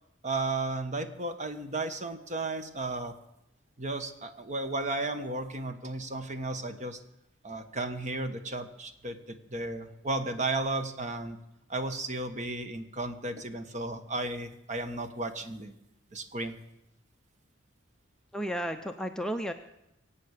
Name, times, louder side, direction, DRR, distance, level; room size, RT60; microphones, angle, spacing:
voice 1, 0.2-3.1 3.8-7.0 7.4-11.4 11.7-15.7 16.1-16.6, right 2 dB, 40° right, 8 dB, 1.3 m, -34 dB
voice 2, 18.3-19.5, equal, 5° left, 5 dB, 0.6 m, -33 dB
23.5 x 8.7 x 6.5 m, 0.85 s
head